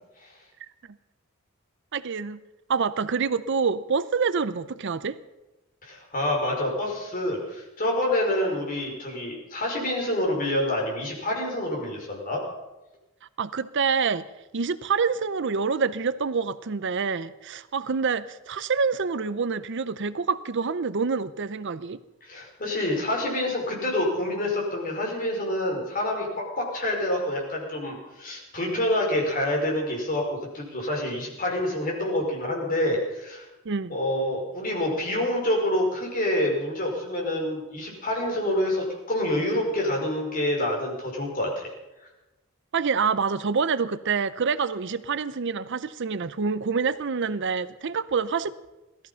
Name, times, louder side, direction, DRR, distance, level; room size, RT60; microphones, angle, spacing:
voice 1, 1.9-2.4 2.7-5.2 13.4-14.3 14.5-22.0 33.6-33.9 42.7-48.5, right 5 dB, 55° right, 15 dB, 0.6 m, -26 dB
voice 2, 5.8-12.4 22.2-33.4 33.9-41.7, left 1 dB, 40° left, -1 dB, 5.2 m, -27 dB
18.0 x 14.0 x 5.7 m, 1.0 s
head